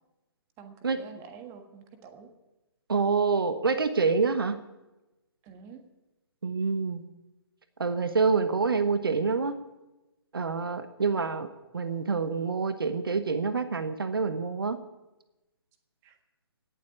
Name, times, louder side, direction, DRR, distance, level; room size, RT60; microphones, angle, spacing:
voice 1, 0.6-2.3 5.4-5.8 11.0-11.1 16.0-16.2, right 6 dB, 20° right, 7 dB, 1.5 m, -48 dB
voice 2, 2.9-4.6 6.4-7.0 7.8-9.5 10.3-11.5 11.7-14.8, right 4 dB, 60° right, 11 dB, 1.0 m, -27 dB
18.0 x 7.5 x 9.7 m, 1.0 s
figure-of-eight pair, 135°, 13 cm